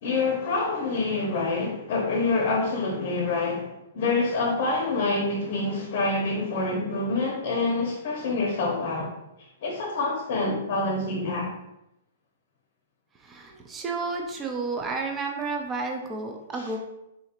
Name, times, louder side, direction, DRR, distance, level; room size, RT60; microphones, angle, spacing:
voice 1, 0.0-9.1 9.6-11.5 16.5-16.7, left 3 dB, 40° left, -1 dB, 0.8 m, -26 dB
voice 2, 13.3-16.8, right 3 dB, 10° right, 2 dB, 0.4 m, -31 dB
4.0 x 2.5 x 4.3 m, 0.88 s
hypercardioid pair, 170°, 0 cm